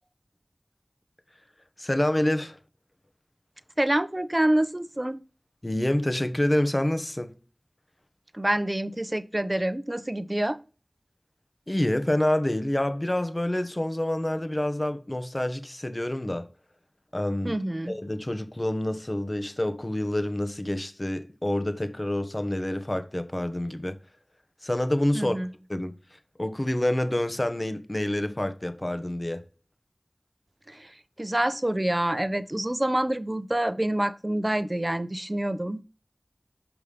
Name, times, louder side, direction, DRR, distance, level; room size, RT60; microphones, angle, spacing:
voice 1, 1.8-2.6 5.6-7.4 11.7-16.5 17.1-17.6 17.9-24.0 24.6-25.4 25.7-29.4, left 1 dB, 35° left, 1.0 m, -27 dB
voice 2, 3.8-5.2 8.3-10.6 17.4-17.9 25.1-25.5 30.7-35.8, right 1 dB, 30° right, 0.7 m, -27 dB
7.0 x 5.5 x 5.0 m
wide cardioid pair, 40°, 0 cm